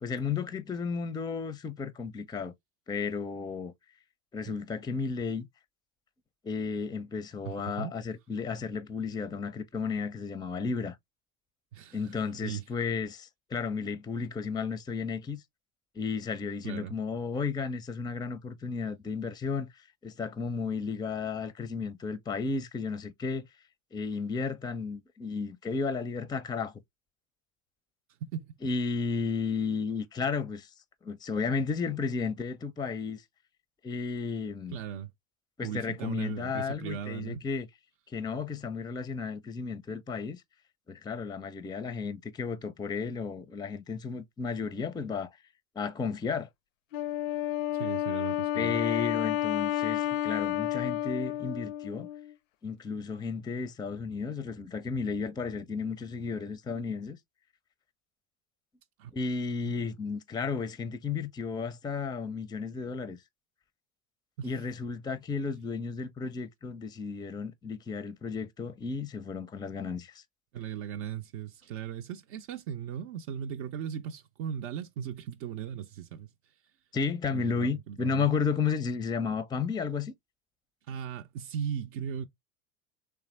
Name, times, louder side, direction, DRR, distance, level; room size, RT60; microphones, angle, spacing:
voice 1, 0.0-2.5 2.9-3.7 4.3-5.5 6.4-11.0 11.9-15.4 16.0-19.7 20.0-23.5 23.9-26.7 28.6-30.7 31.0-33.2 33.8-34.8 35.6-37.7 38.1-40.4 40.9-45.3 45.8-46.5 48.6-52.1 52.6-57.2 59.1-63.2 64.4-70.2 76.9-80.1, left 5 dB, 10° left, 0.5 m, -33 dB
voice 2, 7.4-7.9 11.7-12.6 16.6-16.9 28.2-28.6 34.7-35.1 35.6-37.4 47.7-48.8 59.0-59.1 59.7-59.8 64.4-64.6 70.5-76.3 77.3-78.3 80.9-82.3, right 8 dB, 60° right, 0.6 m, -38 dB
Wind instrument woodwind instrument, 46.9-52.3, left 12 dB, 75° left, 0.5 m, -31 dB
3.4 x 3.3 x 3.1 m
hypercardioid pair, 75°, 39 cm